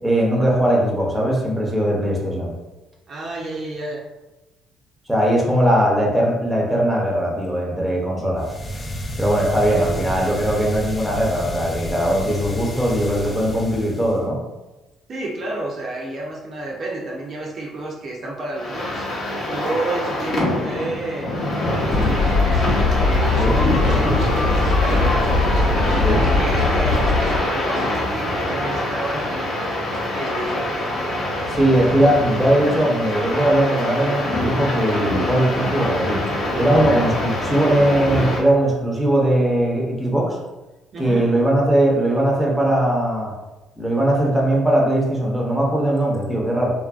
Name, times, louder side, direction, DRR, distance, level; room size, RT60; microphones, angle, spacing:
voice 1, 0.0-2.5 5.1-8.4 9.2-14.4 23.4-23.6 26.0-26.2 31.5-36.2 36.5-40.4 41.0-43.3 43.8-46.7, right 1 dB, ahead, -3 dB, 0.7 m, -19 dB
voice 2, 3.1-4.0 9.7-10.0 15.1-19.0 19.5-21.3 21.6-25.4 25.9-29.8 30.1-30.7 40.9-41.2, right 2 dB, 45° right, -2 dB, 0.5 m, -30 dB
sound 1, 8.4-14.3, equal, 25° left, 0.4 m, -31 dB
sound 2, 18.5-38.4, left 1 dB, 55° left, 0.8 m, -24 dB
sound 3, 21.9-27.4, left 3 dB, 80° left, 1.2 m, -20 dB
2.6 x 2.5 x 2.3 m, 1.1 s
cardioid pair, 105°, 0 cm